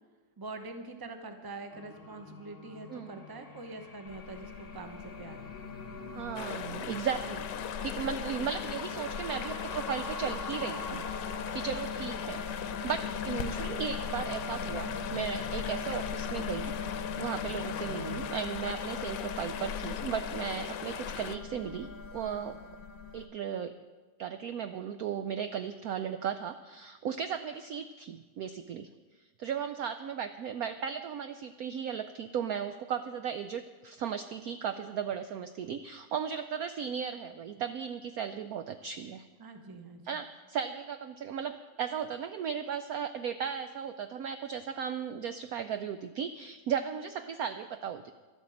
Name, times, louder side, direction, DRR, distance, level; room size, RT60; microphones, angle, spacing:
voice 1, 0.4-5.5 39.4-40.2, right 3 dB, 15° right, 5 dB, 0.7 m, -44 dB
sound 1, 1.7-18.3, left 3 dB, 35° left, 1.3 m, -47 dB
sound 2, 4.1-23.3, left 6 dB, 55° left, 1.2 m, -39 dB
voice 2, 6.1-11.0 11.5-22.6 23.1-23.8 24.2-28.9 29.4-39.3 40.0-48.1, right 7 dB, 70° right, 9 dB, 0.9 m, -36 dB
sound 3, 6.3-21.4, left 10 dB, 75° left, 1.2 m, -40 dB
12.5 x 9.0 x 7.7 m, 1.3 s
omnidirectional pair, 2.0 m